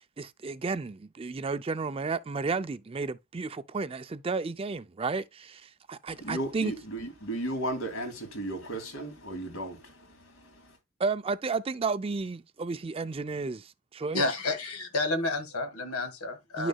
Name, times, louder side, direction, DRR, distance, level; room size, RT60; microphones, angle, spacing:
voice 1, 0.2-6.7 11.0-14.2 16.6-16.7, right 4 dB, 25° right, 0.4 m, -32 dB
voice 2, 6.1-10.6, right 1 dB, 70° left, 2.6 m, -35 dB
voice 3, 14.1-16.7, left 2 dB, 85° left, 1.7 m, -30 dB
10.5 x 6.2 x 2.3 m
head